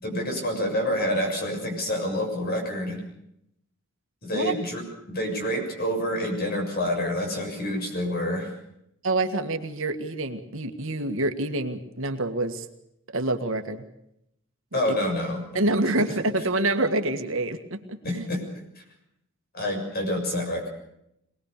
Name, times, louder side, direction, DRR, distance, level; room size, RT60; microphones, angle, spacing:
voice 1, 0.0-3.0 4.2-4.8 5.1-8.5 14.7-15.7 16.0-16.1 18.0-18.6 19.5-20.7, left 1 dB, 45° left, 3 dB, 6.9 m, -28 dB
voice 2, 9.0-12.7 13.1-13.8 14.7-15.0 15.5-18.3, right 2 dB, 65° right, 6 dB, 1.9 m, -27 dB
23.5 x 20.0 x 6.8 m, 0.77 s
head